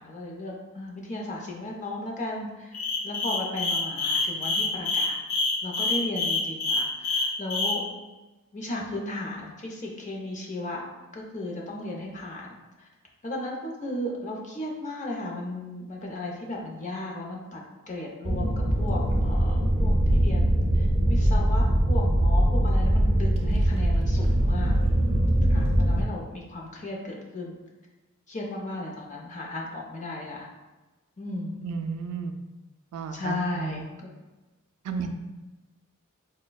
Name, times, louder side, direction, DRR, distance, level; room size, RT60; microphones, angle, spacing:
voice 1, 0.0-5.2 5.6-8.0 8.5-12.9 13.2-24.8 25.5-27.6 28.3-30.5 31.2-31.6 33.1-34.1 34.9-35.1, left 2 dB, 35° left, -1 dB, 0.6 m, -35 dB
sound 1, 2.7-7.8, left 3 dB, 80° left, 0.7 m, -26 dB
sound 2, 18.2-26.0, right 1 dB, 30° right, 0.5 m, -22 dB
voice 2, 31.6-32.3 32.9-33.8 34.8-35.1, right 5 dB, 80° right, 7 dB, 0.3 m, -32 dB
4.8 x 2.1 x 2.2 m, 1.1 s
head